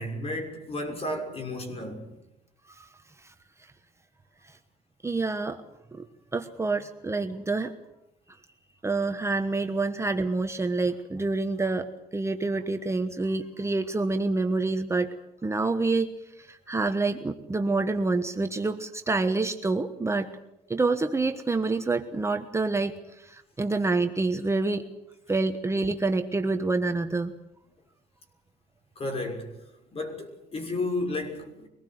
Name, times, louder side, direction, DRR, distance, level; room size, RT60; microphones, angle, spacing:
voice 1, 0.0-2.1 29.0-29.6 29.9-31.7, left 2 dB, 35° left, 6.2 m, -32 dB
voice 2, 5.0-5.6 5.9-6.1 6.3-7.7 8.8-15.1 15.4-20.3 20.7-24.8 25.3-27.3, right 3 dB, 15° right, 1.2 m, -27 dB
24.5 x 20.0 x 8.0 m
cardioid pair, 110°, 17 cm